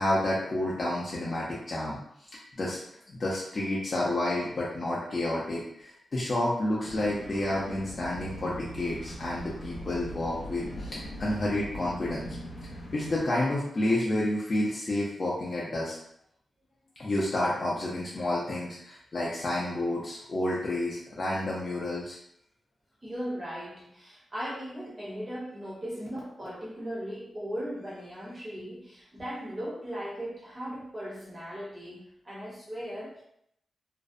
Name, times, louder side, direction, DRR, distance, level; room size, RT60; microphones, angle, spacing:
voice 1, 0.0-2.0 2.5-2.8 3.1-12.3 12.9-15.9 17.0-22.2, left 1 dB, 35° left, -6 dB, 0.4 m, -30 dB
sound 1, 6.8-13.2, equal, 80° left, 0.7 m, -41 dB
voice 2, 23.0-33.2, equal, 20° right, -6 dB, 0.6 m, -38 dB
2.5 x 2.0 x 2.4 m, 0.71 s
wide cardioid pair, 165°, 0 cm